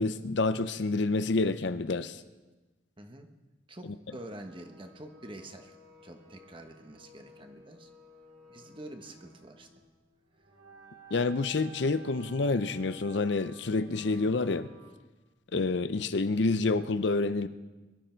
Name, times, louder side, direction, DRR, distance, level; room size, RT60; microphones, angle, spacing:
voice 1, 0.0-2.2 3.8-4.0 11.1-14.7 15.5-17.5, left 3 dB, 65° left, 12 dB, 0.6 m, -28 dB
voice 2, 3.0-3.3 3.7-5.7 6.0-7.9 8.5-9.7, right 1 dB, 25° right, 6 dB, 1.2 m, -46 dB
sound 1, 4.1-14.9, right 3 dB, 80° right, 4.4 m, -54 dB
22.5 x 12.5 x 4.5 m, 1.2 s
head